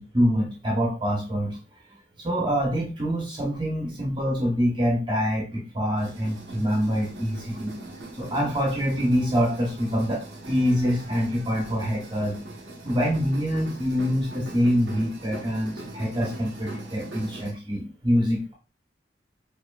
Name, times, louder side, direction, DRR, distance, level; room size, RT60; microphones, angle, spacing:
voice 1, 0.0-1.6 2.2-7.7 8.2-12.4 12.8-18.5, equal, 25° right, -2 dB, 0.9 m, -25 dB
sound 1, 6.0-17.5, right 1 dB, 85° right, 0.9 m, -41 dB
4.8 x 2.7 x 2.3 m, 0.32 s
head